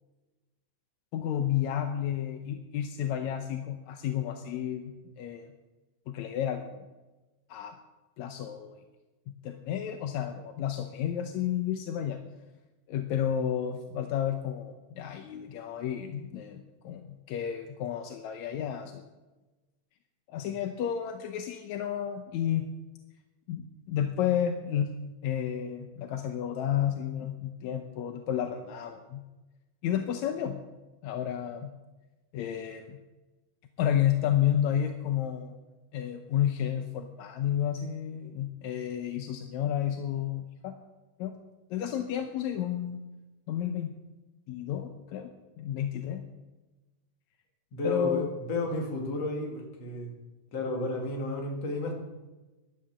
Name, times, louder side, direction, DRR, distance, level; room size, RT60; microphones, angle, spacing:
voice 1, 1.1-5.5 6.1-6.9 7.5-7.7 8.2-8.8 9.3-12.2 12.9-19.1 20.3-22.7 23.5-24.9 25.2-29.2 29.8-30.6 31.0-31.7 32.3-33.0 33.8-35.5 35.9-40.8 41.2-41.4 41.7-43.0 43.5-43.9 44.5-45.3 45.6-46.2 47.8-48.3, left 10 dB, 75° left, 6 dB, 1.9 m, -31 dB
voice 2, 47.7-50.1 50.5-51.9, left 2 dB, 50° left, 1 dB, 3.2 m, -32 dB
13.5 x 11.5 x 6.7 m, 1.1 s
omnidirectional pair, 3.8 m